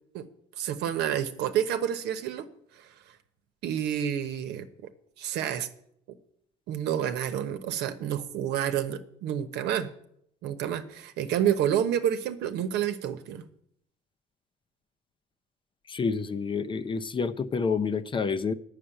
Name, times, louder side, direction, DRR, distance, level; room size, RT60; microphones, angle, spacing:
voice 1, 0.6-2.5 2.7-3.2 3.6-4.9 5.2-5.7 6.1-6.2 6.7-9.9 10.4-13.4, right 10 dB, 85° right, 1.0 m, -29 dB
voice 2, 15.9-18.5, left 5 dB, 30° left, 0.6 m, -28 dB
9.9 x 6.5 x 8.9 m
cardioid pair, 110°, 17 cm